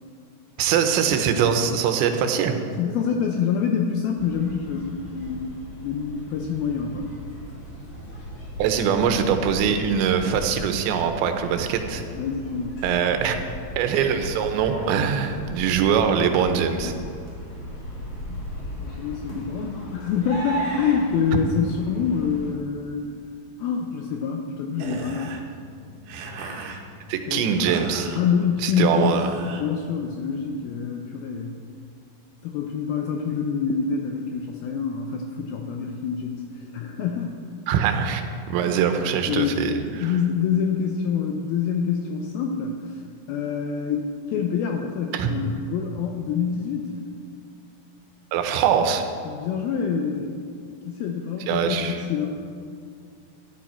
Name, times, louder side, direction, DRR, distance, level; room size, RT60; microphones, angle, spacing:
voice 1, 0.6-2.6 8.6-12.0 12.8-13.4 13.8-16.9 27.1-28.1 28.6-29.2 37.7-40.1 45.1-45.3 48.3-49.1 51.5-52.0, right 7 dB, 90° right, 6 dB, 3.2 m, -22 dB
voice 2, 2.8-7.1 12.2-12.8 18.3-18.5 18.8-23.0 23.6-25.4 27.3-27.5 28.1-31.6 32.4-37.4 38.5-39.6 39.9-43.0 43.3-46.9 49.3-50.3 50.9-52.3, left 6 dB, 80° left, 2 dB, 2.2 m, -26 dB
sound 1, 4.2-22.5, equal, 35° left, 2.6 m, -37 dB
sound 2, 24.8-30.6, right 3 dB, 70° right, 2.4 m, -39 dB
13.0 x 11.0 x 4.4 m, 2.3 s
omnidirectional pair, 5.1 m